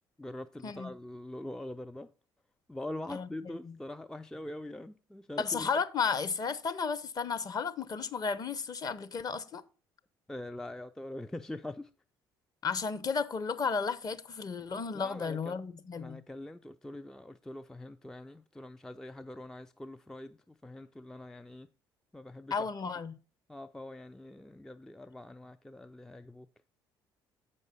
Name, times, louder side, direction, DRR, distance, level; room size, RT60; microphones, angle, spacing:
voice 1, 0.2-2.1 2.7-5.7 10.3-11.9 14.9-15.6 16.0-21.7 22.1-22.7 23.5-26.5, left 1 dB, 5° left, 0.3 m, -43 dB
voice 2, 3.1-3.8 5.4-9.6 12.6-16.2 22.5-23.2, left 5 dB, 30° left, 0.8 m, -33 dB
7.9 x 5.4 x 5.3 m
figure-of-eight pair, 50°, 12 cm